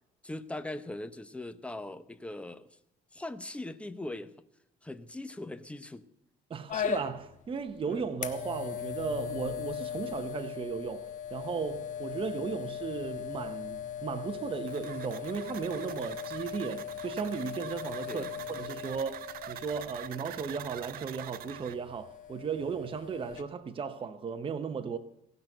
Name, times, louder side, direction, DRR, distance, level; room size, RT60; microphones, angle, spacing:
voice 1, 0.2-2.7 3.1-4.3 4.8-6.1 18.1-18.3, left 1 dB, 5° left, 0.8 m, -40 dB
voice 2, 6.5-25.0, right 6 dB, 30° right, 0.8 m, -36 dB
sound 1, 6.7-23.4, left 9 dB, 50° left, 1.2 m, -39 dB
sound 2, 14.7-21.8, right 13 dB, 60° right, 0.5 m, -45 dB
18.0 x 6.0 x 7.8 m
cardioid pair, 110°, 17 cm